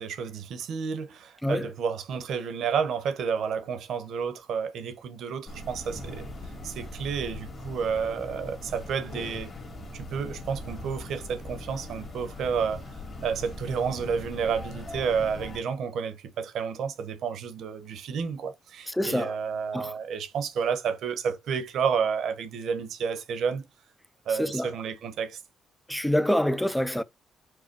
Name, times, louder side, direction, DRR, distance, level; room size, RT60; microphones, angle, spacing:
voice 1, 0.0-6.3 6.6-9.5 9.9-12.8 13.2-23.6 24.3-25.4, right 6 dB, 70° right, 1.0 m, -30 dB
sound 1, 5.5-15.6, left 1 dB, 35° left, 1.9 m, -40 dB
voice 2, 18.9-19.4 19.7-19.9 24.4-24.7 25.9-27.0, left 1 dB, 5° left, 0.4 m, -26 dB
4.8 x 2.2 x 4.6 m
cardioid pair, 90°, 0 cm